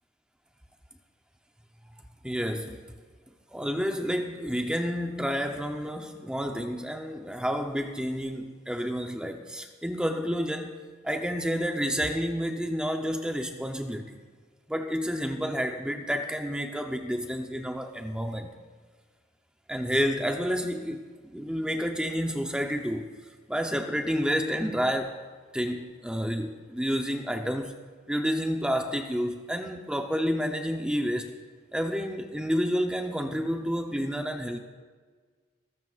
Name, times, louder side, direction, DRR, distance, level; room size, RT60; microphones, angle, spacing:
voice 1, 2.2-2.8 3.5-10.7 11.0-14.2 14.7-18.5 19.7-23.1 23.5-25.2 25.5-27.8 28.1-31.3 31.7-34.6, equal, 5° right, 4 dB, 0.7 m, -30 dB
20.5 x 14.0 x 2.5 m, 1.5 s
head